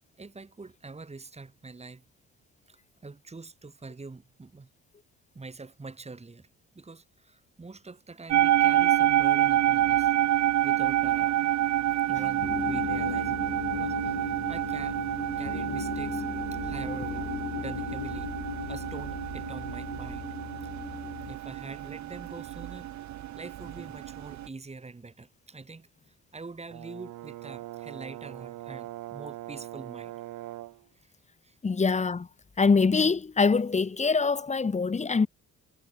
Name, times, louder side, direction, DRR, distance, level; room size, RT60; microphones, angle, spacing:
voice 1, 0.2-2.0 2.7-4.7 5.3-6.5 6.7-10.1 10.6-11.4 12.1-16.2 16.5-18.3 18.7-20.3 20.6-20.7 21.3-22.9 23.3-30.2 31.0-31.1 31.4-31.6, right 3 dB, 20° right, 3.0 m, -44 dB
sound 1, 8.3-24.5, right 12 dB, 70° right, 1.3 m, -28 dB
sound 2, 12.2-21.3, left 12 dB, 65° left, 1.2 m, -37 dB
Brass instrument, 26.7-30.9, right 15 dB, 85° right, 2.3 m, -41 dB
voice 2, 31.6-32.3 32.6-35.3, left 4 dB, 25° left, 1.0 m, -24 dB
cardioid pair, 90°, 30 cm